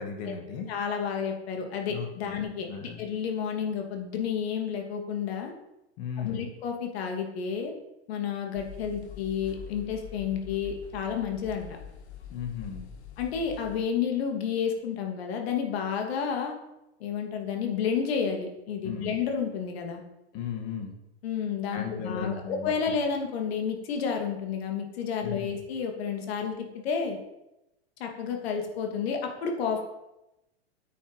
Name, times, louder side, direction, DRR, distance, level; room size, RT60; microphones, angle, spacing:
voice 1, 0.0-0.7 1.9-3.0 6.0-6.5 12.3-12.9 18.8-19.2 20.3-21.0 21.7-22.9 25.2-25.5, left 6 dB, 45° left, 4 dB, 2.3 m, -36 dB
voice 2, 0.7-5.5 6.2-7.7 8.1-11.7 13.2-16.6 17.0-20.0 21.2-27.2 28.0-29.8, left 7 dB, 70° left, 3 dB, 2.7 m, -31 dB
sound 1, 8.6-13.8, left 8 dB, 90° left, 1.9 m, -44 dB
9.3 x 8.5 x 5.5 m, 0.91 s
supercardioid pair, 145°, 33 cm